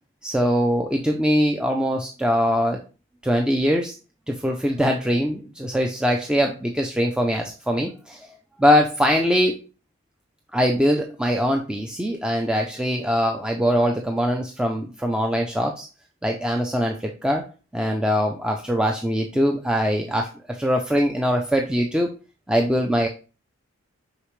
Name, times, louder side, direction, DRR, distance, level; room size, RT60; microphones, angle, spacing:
voice 1, 0.2-2.8 3.2-4.0 4.3-8.3 8.6-9.6 10.5-15.9 16.2-17.4 17.7-22.1 22.5-23.1, equal, 5° right, 2 dB, 0.4 m, -22 dB
6.7 x 4.9 x 3.2 m, 0.35 s
head